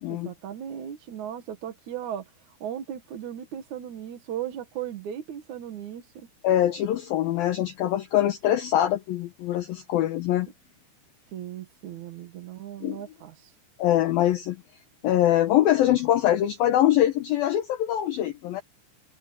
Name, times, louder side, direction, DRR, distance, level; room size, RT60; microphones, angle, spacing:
voice 1, 0.1-6.3 11.3-13.5, right 10 dB, 60° right, 2.1 m, -37 dB
voice 2, 6.4-10.5 12.8-13.0 13.8-14.6 15.0-18.6, left 12 dB, 70° left, 2.3 m, -23 dB
omnidirectional pair, 5.4 m